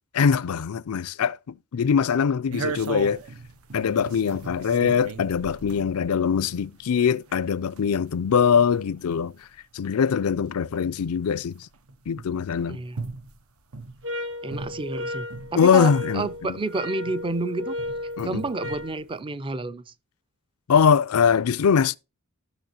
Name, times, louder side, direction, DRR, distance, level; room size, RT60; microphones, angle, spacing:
voice 1, 0.1-3.2 3.7-9.3 9.7-11.5 12.1-12.8 15.6-16.3 18.2-18.4 20.7-22.0, left 6 dB, 90° left, 0.4 m, -22 dB
sound 1, 2.5-15.7 16.0-18.3 18.6-19.1, right 4 dB, 75° right, 0.8 m, -38 dB
voice 2, 12.7-13.0 14.4-17.8 18.2-19.9, right 3 dB, 25° right, 0.5 m, -30 dB
sound 2, 14.0-19.0, left 1 dB, 60° right, 1.2 m, -34 dB
13.0 x 6.8 x 2.9 m
head